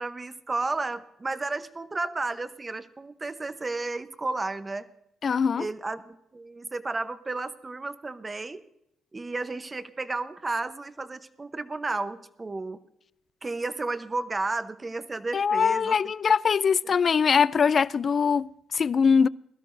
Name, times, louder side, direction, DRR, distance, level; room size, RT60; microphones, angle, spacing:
voice 1, 0.0-4.9 5.6-8.6 9.1-12.8 13.4-16.0, right 3 dB, 25° right, 0.8 m, -32 dB
voice 2, 5.2-5.7 15.3-19.3, left 6 dB, 45° left, 0.3 m, -22 dB
21.5 x 13.0 x 2.6 m
cardioid pair, 90°, 0 cm